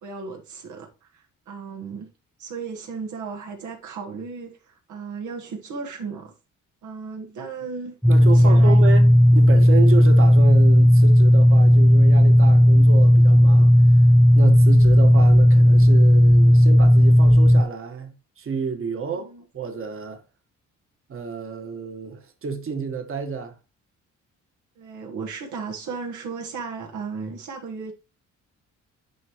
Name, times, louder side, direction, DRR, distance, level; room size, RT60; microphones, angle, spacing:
voice 1, 0.0-2.1 2.4-6.3 6.8-8.8 19.1-19.4 24.8-27.9, right 5 dB, 75° right, 1.5 m, -35 dB
sound 1, 8.0-17.6, equal, ahead, 0.5 m, -13 dB
voice 2, 8.1-13.7 14.3-20.2 21.1-23.5, right 5 dB, 45° right, 1.6 m, -30 dB
10.0 x 4.6 x 3.1 m
cardioid pair, 90°, 30 cm